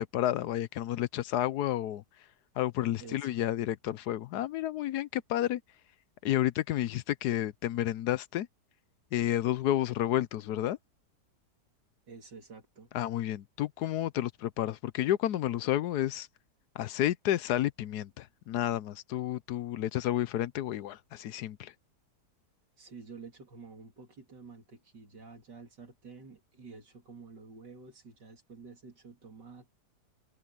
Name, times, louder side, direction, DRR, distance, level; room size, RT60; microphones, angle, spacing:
voice 1, 0.0-2.0 2.6-5.6 6.2-8.5 9.1-10.8 12.9-16.3 16.7-21.7, left 12 dB, 75° left, 1.1 m, -31 dB
voice 2, 3.0-3.4 12.1-12.9 22.8-29.7, right 4 dB, 80° right, 3.9 m, -50 dB
omnidirectional pair, 1.8 m